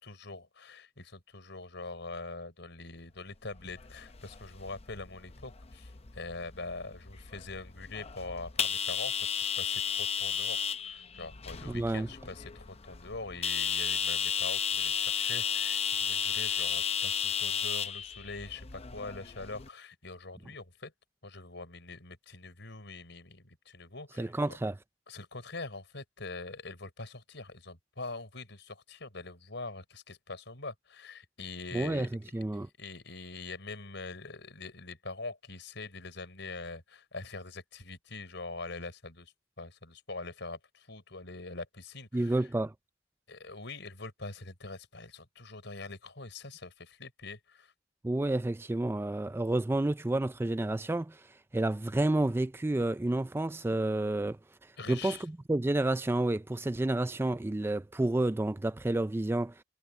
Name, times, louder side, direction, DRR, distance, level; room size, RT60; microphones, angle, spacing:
voice 1, 0.0-20.9 21.2-24.6 25.1-32.2 32.8-42.4 43.3-47.7 54.8-55.2, left 3 dB, 65° left, 6.4 m, -43 dB
sound 1, 3.6-19.7, left 7 dB, 35° left, 0.7 m, -34 dB
voice 2, 11.6-12.1 24.2-24.7 31.7-32.7 42.1-42.7 48.0-59.6, right 1 dB, 10° right, 0.4 m, -30 dB
head